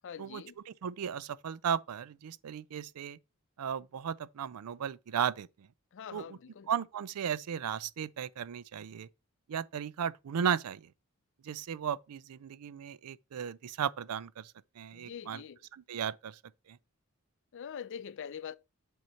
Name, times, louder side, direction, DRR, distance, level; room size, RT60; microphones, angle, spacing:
voice 1, 0.0-0.6 5.9-6.7 14.9-15.7 17.5-18.6, left 8 dB, 55° left, 0.4 m, -44 dB
voice 2, 0.8-3.2 3.6-5.7 6.1-6.4 6.7-9.1 9.5-10.9 11.4-15.4 15.7-16.4 16.7-16.8, right 8 dB, 90° right, 0.4 m, -35 dB
7.8 x 2.9 x 5.6 m
head